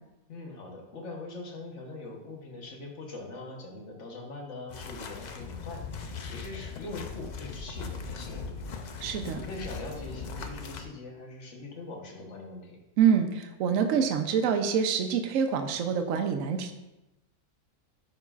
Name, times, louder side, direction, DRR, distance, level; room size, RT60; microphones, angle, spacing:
voice 1, 0.3-12.8, left 2 dB, 60° left, 0 dB, 1.4 m, -42 dB
sound 1, 4.7-10.8, left 5 dB, 90° left, 0.3 m, -39 dB
voice 2, 9.0-9.4 13.0-16.7, right 7 dB, 70° right, 6 dB, 1.0 m, -26 dB
10.5 x 4.7 x 2.4 m, 0.98 s
omnidirectional pair, 1.5 m